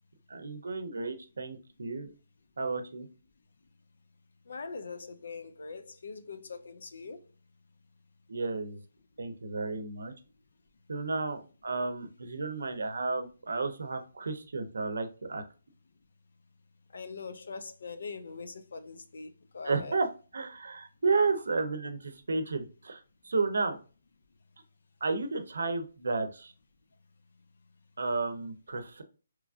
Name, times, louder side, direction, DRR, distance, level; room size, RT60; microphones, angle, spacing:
voice 1, 0.3-2.1 2.6-3.1 8.3-8.8 9.2-10.1 10.9-15.4 19.6-20.1 20.3-23.8 25.0-26.5 28.0-29.0, right 3 dB, 85° right, 0.6 m, -32 dB
voice 2, 4.5-7.2 16.9-19.9, left 4 dB, 65° left, 0.4 m, -42 dB
3.0 x 2.3 x 2.4 m
hypercardioid pair, 170°, 0 cm